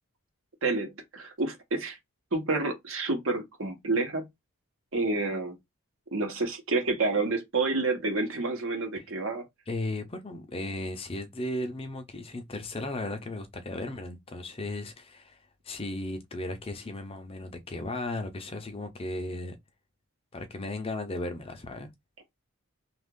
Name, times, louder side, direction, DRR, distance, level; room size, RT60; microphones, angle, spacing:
voice 1, 0.6-2.0 2.3-4.3 4.9-5.6 6.1-9.4, right 3 dB, 65° right, 1.0 m, -29 dB
voice 2, 9.7-19.6 20.3-21.9, left 1 dB, 25° left, 0.5 m, -36 dB
2.9 x 2.5 x 3.6 m
head